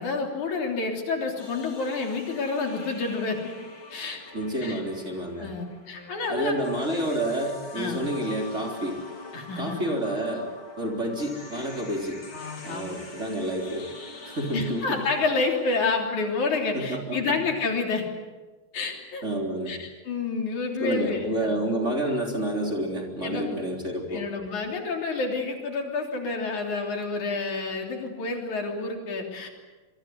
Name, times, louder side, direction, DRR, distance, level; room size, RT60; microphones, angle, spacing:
voice 1, 0.0-3.5 3.9-4.2 4.6-4.8 5.4-6.5 6.9-7.1 7.8-8.1 9.3-9.8 12.3-12.9 14.5-18.1 18.7-19.2 19.7-21.5 23.2-23.5 24.1-29.5, left 4 dB, 65° left, 2 dB, 4.7 m, -29 dB
sound 1, 1.4-15.9, left 3 dB, 40° left, 3.8 m, -44 dB
voice 2, 4.3-5.5 6.3-9.0 9.6-10.5 10.8-12.2 12.6-13.9 14.3-15.0 16.7-17.4 19.2-19.8 20.8-24.3, right 1 dB, 20° right, 1 dB, 3.8 m, -29 dB
26.5 x 23.0 x 8.1 m, 1.3 s
omnidirectional pair, 3.6 m